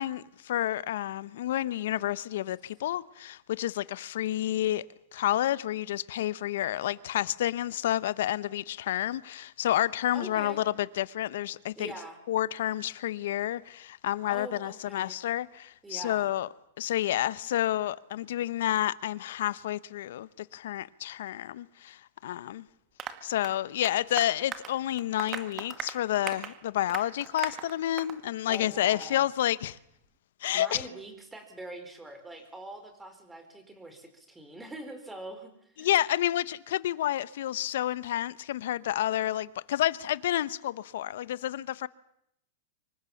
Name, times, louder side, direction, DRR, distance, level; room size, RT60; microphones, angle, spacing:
voice 1, 0.0-4.8 5.1-11.9 12.3-16.5 16.8-22.6 23.2-29.8 30.4-30.8 35.8-41.9, left 13 dB, 70° left, 1.1 m, -30 dB
voice 2, 10.1-10.6 11.8-12.2 14.3-15.2 15.8-16.3 28.5-29.3 30.5-35.9, right 1 dB, 5° right, 4.5 m, -43 dB
Applause, 23.0-28.2 28.5-28.7 29.0-29.1 29.5-29.6, right 8 dB, 25° right, 2.0 m, -40 dB
25.5 x 24.5 x 7.3 m
supercardioid pair, 155°, 0 cm